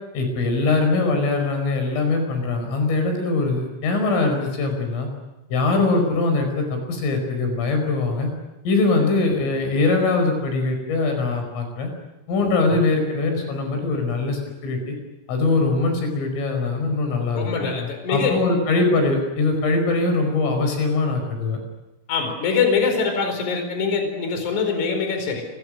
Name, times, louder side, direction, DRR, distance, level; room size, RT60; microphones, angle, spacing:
voice 1, 0.1-5.1 5.5-8.3 8.7-11.9 12.3-15.0 15.3-17.7 18.1-21.6, left 3 dB, 85° left, 5 dB, 7.6 m, -22 dB
voice 2, 17.3-18.4 22.1-25.5, left 5 dB, 40° left, 5 dB, 5.6 m, -23 dB
29.0 x 24.0 x 6.5 m, 0.99 s
omnidirectional pair, 5.6 m